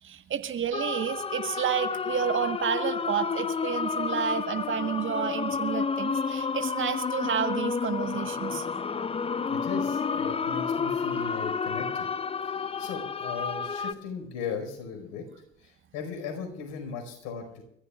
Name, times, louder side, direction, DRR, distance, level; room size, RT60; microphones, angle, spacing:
voice 1, 0.0-8.7, right 8 dB, 40° right, 8 dB, 1.5 m, -30 dB
sound 1, 0.7-13.9, left 5 dB, 20° left, 0.7 m, -30 dB
voice 2, 9.5-12.1 12.4-15.3 15.6-17.6, left 5 dB, 65° left, 5 dB, 5.1 m, -37 dB
29.5 x 15.0 x 2.4 m, 0.76 s
hypercardioid pair, 70°, 31 cm